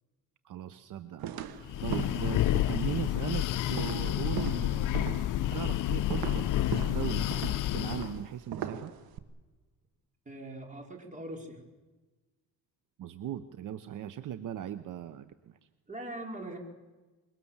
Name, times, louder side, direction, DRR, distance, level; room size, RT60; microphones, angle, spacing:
voice 1, 0.4-1.3 1.8-4.9 5.5-6.6 6.9-7.3 7.7-8.9 13.0-15.6, right 10 dB, 60° right, 12 dB, 1.0 m, -38 dB
sound 1, 1.2-9.2, right 10 dB, 80° right, 1.7 m, -40 dB
Breathing, 1.6-8.2, left 13 dB, 60° left, 0.7 m, -30 dB
voice 2, 10.2-11.6 15.9-16.6, right 1 dB, 20° right, 2 dB, 4.8 m, -41 dB
25.5 x 22.5 x 7.4 m, 1.2 s
cardioid pair, 120°, 35 cm